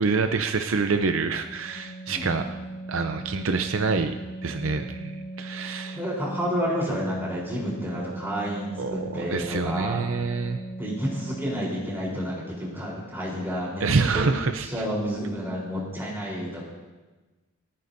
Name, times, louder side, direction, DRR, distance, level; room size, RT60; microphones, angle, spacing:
voice 1, 0.0-2.5 2.9-4.2 4.4-6.0 8.8-10.6 13.8-14.9, right 4 dB, 65° right, 7 dB, 0.6 m, -26 dB
Organ, 1.5-12.0, right 2 dB, 35° left, 2.0 m, -39 dB
voice 2, 2.1-2.4 5.9-10.0 10.8-14.3 14.6-16.6, equal, 10° right, -5 dB, 3.9 m, -30 dB
28.5 x 9.5 x 2.7 m, 1.2 s
head